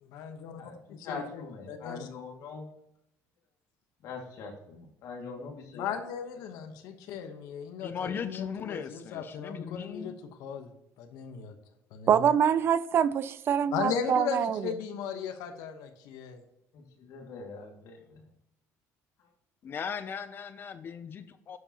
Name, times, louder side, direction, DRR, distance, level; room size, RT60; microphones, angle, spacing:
voice 1, 0.0-0.6 0.9-1.4 1.7-2.1 5.7-10.1 10.4-10.7 11.0-11.5 11.9-12.3 13.7-16.4, left 7 dB, 80° left, 6 dB, 1.0 m, -37 dB
voice 2, 0.6-2.7 4.0-6.0 6.5-6.7 16.7-18.3 19.2-19.3, left 4 dB, 60° left, 1 dB, 2.1 m, -43 dB
voice 3, 7.8-10.2 19.6-21.6, left 7 dB, 35° left, 11 dB, 0.5 m, -38 dB
voice 4, 12.1-14.6, right 8 dB, 40° right, 16 dB, 0.4 m, -25 dB
11.0 x 7.2 x 2.9 m, 0.80 s
cardioid pair, 145°, 6 cm